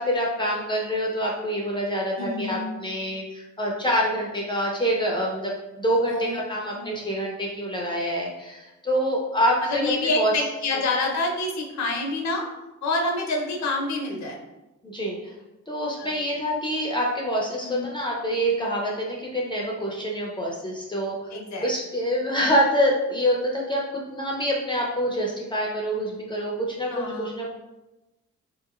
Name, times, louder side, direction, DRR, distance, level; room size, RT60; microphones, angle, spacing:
voice 1, 0.0-9.8 10.2-10.3 14.8-15.3 15.7-21.3 21.6-27.5, equal, 15° left, -2 dB, 0.6 m, -26 dB
voice 2, 2.2-2.7 6.0-6.4 6.7-7.0 9.6-12.5 12.8-14.4 16.0-16.1 17.6-17.9 21.3-21.7 26.9-27.3, left 2 dB, 65° left, 1 dB, 0.8 m, -27 dB
3.8 x 2.9 x 2.4 m, 1.0 s
cardioid pair, 90°, 30 cm